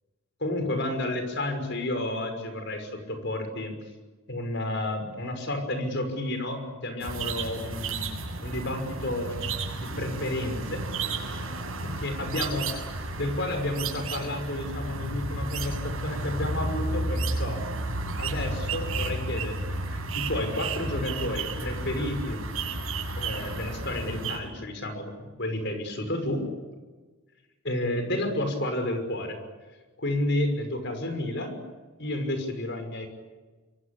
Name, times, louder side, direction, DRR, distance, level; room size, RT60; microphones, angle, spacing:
voice 1, 0.4-3.8 4.3-8.1 8.4-10.8 11.8-12.7 13.2-17.7 18.2-22.4 23.2-26.5 27.6-29.4 30.0-31.6 32.0-33.1, left 1 dB, 55° left, 7 dB, 6.0 m, -31 dB
sound 1, 7.0-24.4, right 2 dB, 80° right, 7.6 m, -32 dB
26.0 x 24.0 x 8.6 m, 1.3 s
head